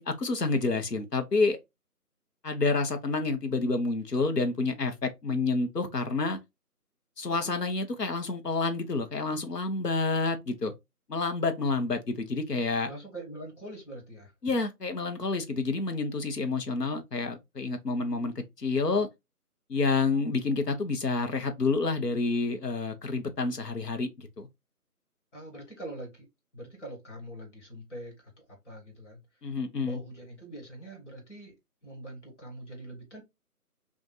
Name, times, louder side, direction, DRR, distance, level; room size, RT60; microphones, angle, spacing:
voice 1, 0.0-1.6 2.4-6.4 7.2-10.7 11.1-12.9 14.4-19.1 19.7-24.5 29.4-30.0, left 3 dB, 85° left, 1.0 m, -29 dB
voice 2, 12.8-14.3 25.3-26.3 26.5-29.2 29.8-33.2, right 1 dB, 50° left, 1.6 m, -43 dB
2.6 x 2.5 x 3.9 m
figure-of-eight pair, 160°, 47 cm